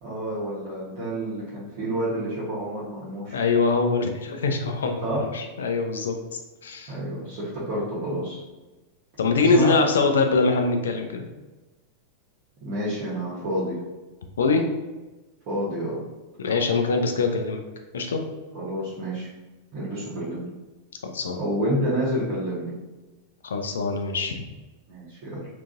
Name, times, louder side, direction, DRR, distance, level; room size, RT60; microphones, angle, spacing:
voice 1, 0.0-3.4 5.0-5.2 6.9-8.4 9.4-9.8 12.6-13.8 15.5-16.0 18.5-19.3 19.7-20.5 21.4-22.7 24.9-25.5, right 1 dB, 45° right, -9 dB, 1.0 m, -29 dB
voice 2, 3.3-5.0 5.3-6.9 9.2-11.2 14.4-14.6 16.4-17.6 17.9-18.2 21.0-21.4 23.4-24.4, left 4 dB, 65° left, 4 dB, 0.4 m, -23 dB
3.6 x 2.5 x 2.5 m, 1.2 s
figure-of-eight pair, 90°, 0 cm